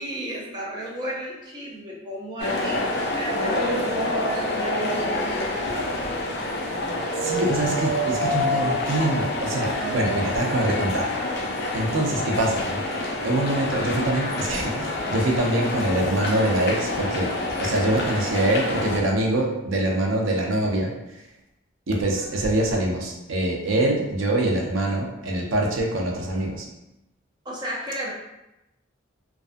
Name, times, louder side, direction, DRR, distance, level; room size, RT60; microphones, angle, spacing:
voice 1, 0.0-6.0 9.7-10.5 11.7-12.3 17.9-18.0 22.1-22.4 27.4-28.1, right 1 dB, 20° right, -4 dB, 0.5 m, -34 dB
sound 1, 2.4-19.0, left 1 dB, 55° left, 0.4 m, -27 dB
voice 2, 7.2-11.1 11.7-12.8 13.2-17.3 17.6-21.2 21.9-26.7, right 1 dB, 80° right, 0 dB, 0.5 m, -24 dB
2.3 x 2.3 x 2.5 m, 0.91 s
head